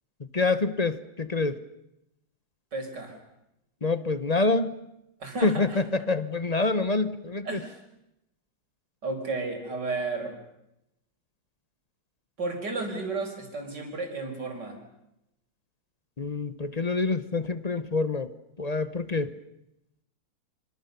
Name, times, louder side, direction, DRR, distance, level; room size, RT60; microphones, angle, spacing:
voice 1, 0.3-1.6 3.8-4.7 5.4-7.6 16.2-18.3 18.6-19.3, left 3 dB, 35° left, 13 dB, 0.6 m, -26 dB
voice 2, 2.7-3.2 5.2-5.9 7.4-7.8 9.0-10.4 12.4-14.8, right 3 dB, 55° right, 3 dB, 5.8 m, -33 dB
27.5 x 26.5 x 6.9 m, 0.84 s
omnidirectional pair, 2.3 m